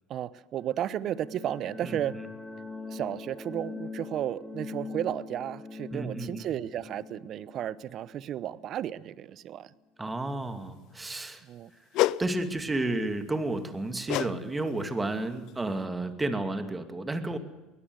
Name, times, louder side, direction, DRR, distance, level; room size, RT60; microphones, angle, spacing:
voice 1, 0.1-2.2 2.9-9.7 11.5-11.7, right 11 dB, 50° right, 19 dB, 0.9 m, -33 dB
sound 1, 0.6-9.2, left 4 dB, 5° left, 3.2 m, -42 dB
voice 2, 1.8-2.2 5.9-6.5 10.0-11.4 12.2-17.4, right 2 dB, 15° right, 8 dB, 2.5 m, -32 dB
sound 2, 11.9-12.2 14.1-14.4 14.6-14.9 15.5-15.6, left 16 dB, 60° left, 0.6 m, -27 dB
22.0 x 18.0 x 8.1 m, 1.1 s
hypercardioid pair, 80°, 0 cm